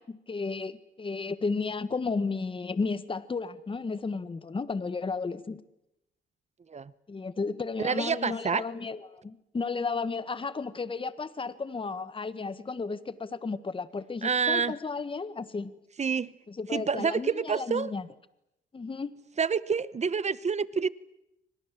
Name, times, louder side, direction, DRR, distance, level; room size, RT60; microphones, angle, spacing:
voice 1, 0.0-5.6 7.1-15.7 16.6-18.1 18.7-19.1, left 4 dB, 25° left, 1.5 m, -33 dB
voice 2, 7.8-8.6 14.2-14.7 16.0-16.3 16.7-17.9 19.4-20.9, right 6 dB, 35° right, 1.0 m, -28 dB
29.5 x 25.5 x 7.6 m
cardioid pair, 90°, 20 cm